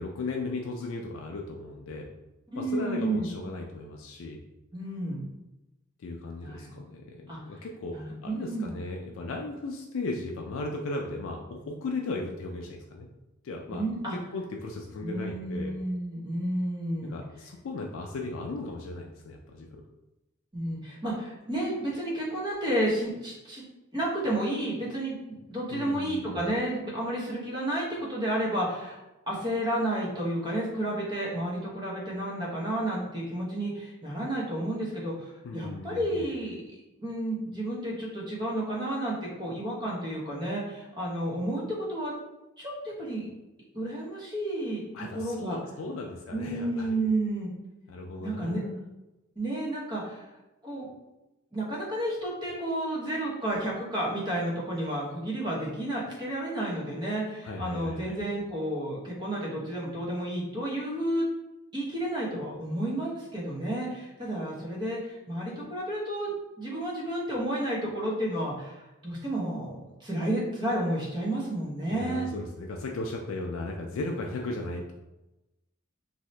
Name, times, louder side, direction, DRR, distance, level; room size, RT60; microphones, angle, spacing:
voice 1, 0.0-2.1 2.6-4.4 6.0-8.0 8.2-13.1 13.4-13.8 14.1-15.8 17.0-19.8 25.7-26.4 35.4-36.2 44.9-46.9 47.9-48.8 57.4-58.2 71.9-74.9, left 2 dB, 75° left, 1 dB, 0.4 m, -36 dB
voice 2, 2.5-3.3 4.7-5.2 6.4-6.7 7.3-7.4 7.9-8.8 13.7-14.2 15.0-17.2 20.5-23.6 23.9-29.0 29.3-36.6 37.0-41.6 41.9-42.1 42.6-43.3 43.7-44.8 45.1-45.6 46.3-47.5 48.2-48.6 49.4-50.2 50.6-50.9 51.5-61.2 61.7-66.3 66.6-72.3, right 1 dB, 20° right, -5 dB, 0.9 m, -31 dB
2.7 x 2.7 x 3.2 m, 0.99 s
head